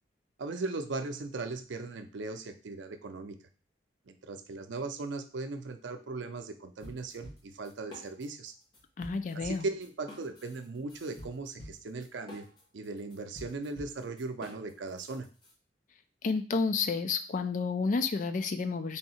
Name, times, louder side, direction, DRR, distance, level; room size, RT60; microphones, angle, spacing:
voice 1, 0.4-3.4 4.1-8.5 9.3-12.4 12.7-15.3, right 3 dB, 85° right, 8 dB, 0.5 m, -38 dB
sound 1, 6.8-8.5 8.7-15.5, left 1 dB, 25° left, 1.0 m, -49 dB
voice 2, 9.0-9.6 16.2-19.0, left 4 dB, 45° left, 9 dB, 0.4 m, -30 dB
3.4 x 2.7 x 4.2 m, 0.37 s
head